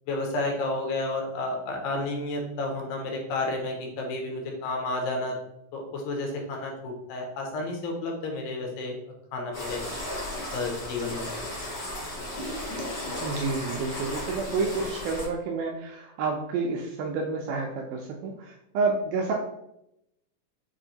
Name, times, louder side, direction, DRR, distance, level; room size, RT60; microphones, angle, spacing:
voice 1, 0.1-5.4 5.7-9.0 9.3-9.8 10.5-11.3, left 2 dB, 85° left, 1 dB, 2.6 m, -31 dB
sound 1, 9.5-15.2, left 1 dB, 55° left, 1.0 m, -35 dB
voice 2, 13.2-19.3, right 4 dB, 80° right, 1 dB, 1.9 m, -29 dB
6.1 x 2.5 x 2.7 m, 0.82 s
omnidirectional pair, 4.0 m